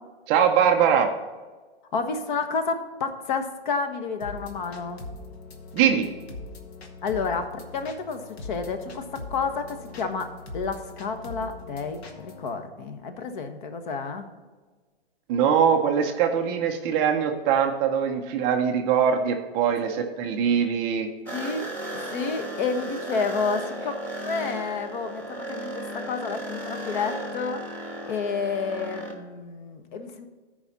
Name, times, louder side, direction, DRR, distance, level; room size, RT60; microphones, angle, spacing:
voice 1, 0.3-1.1 5.7-6.1 15.3-21.1, right 7 dB, 15° right, 3 dB, 0.4 m, -22 dB
voice 2, 1.9-5.0 7.0-14.3 20.0-20.1 21.3-21.7 22.1-23.9 24.2-27.8 28.0-30.3, left 4 dB, 50° left, 8 dB, 1.2 m, -30 dB
sound 1, 4.2-12.6, left 3 dB, 75° left, 1.7 m, -41 dB
sound 2, 21.3-29.1, right 1 dB, 5° left, 1.1 m, -35 dB
14.0 x 5.0 x 4.1 m, 1.4 s
hypercardioid pair, 150°, 32 cm